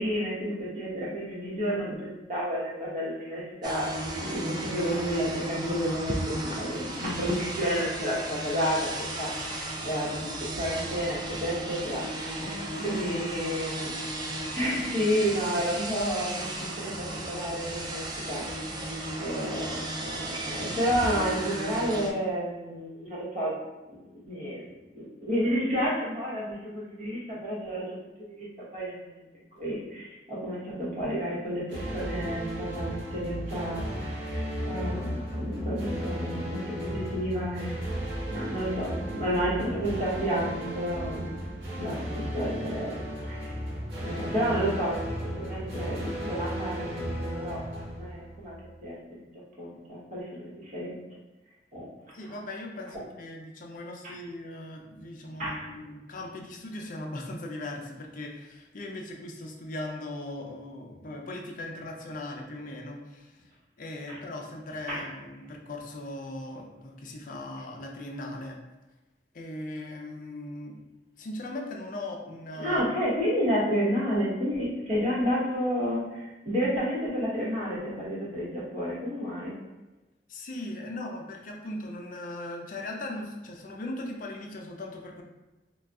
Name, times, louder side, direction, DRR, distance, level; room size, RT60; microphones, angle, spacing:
voice 1, 0.0-3.9 4.1-12.4 12.8-13.9 14.5-16.5 16.7-18.7 19.2-23.6 23.9-24.0 24.2-27.8 28.2-29.2 29.6-37.9 38.3-41.4 41.8-43.0 43.3-43.7 44.0-48.5 48.8-49.2 49.6-50.9 51.7-51.9 52.2-52.3 52.9-53.0 55.4-55.6 64.1-64.2 64.9-65.0 72.6-79.5, equal, 45° right, -7 dB, 1.1 m, -31 dB
sound 1, 3.6-22.1, right 1 dB, 25° right, 0.3 m, -35 dB
voice 2, 12.4-13.2 52.1-63.4 63.8-68.6 69.3-70.8 71.2-72.8 80.3-85.2, left 1 dB, 50° left, 1 dB, 0.5 m, -39 dB
sound 2, 31.7-48.7, equal, 80° right, 0.9 m, -35 dB
3.8 x 2.3 x 2.3 m, 1.1 s
head